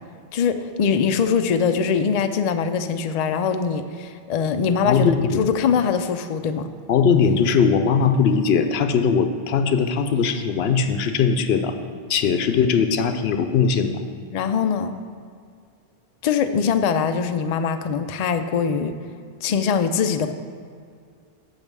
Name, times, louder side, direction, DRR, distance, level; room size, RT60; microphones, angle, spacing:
voice 1, 0.3-5.1 5.4-6.7 14.3-14.9 16.2-19.0 19.4-20.3, left 6 dB, 55° left, 8 dB, 0.4 m, -22 dB
voice 2, 4.9-5.4 6.9-11.7 12.1-14.0, left 6 dB, 85° left, 8 dB, 0.8 m, -20 dB
7.2 x 5.4 x 6.0 m, 2.2 s
omnidirectional pair, 1.0 m